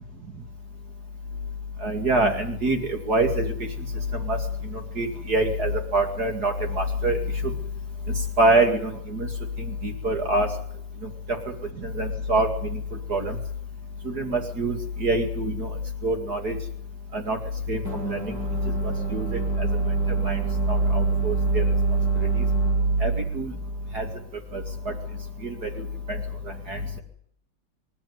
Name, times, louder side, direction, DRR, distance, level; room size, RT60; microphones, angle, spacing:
voice 1, 1.8-3.5 4.3-4.4 5.0-7.2 8.4-9.3 9.8-10.5 11.8-12.5 13.1-13.3 14.1-14.8 15.0-15.7 16.0-16.5 17.1-17.4 17.7-18.2 19.1-19.3 19.6-19.7 20.2-20.4 20.7-21.6 23.0-23.5 23.9-24.0 24.5-24.6 26.7-27.0, right 2 dB, 55° right, 4 dB, 2.9 m, -24 dB
sound 1, 17.8-24.9, right 3 dB, 75° right, 7.9 m, -25 dB
26.0 x 13.0 x 9.6 m, 0.67 s
omnidirectional pair, 2.0 m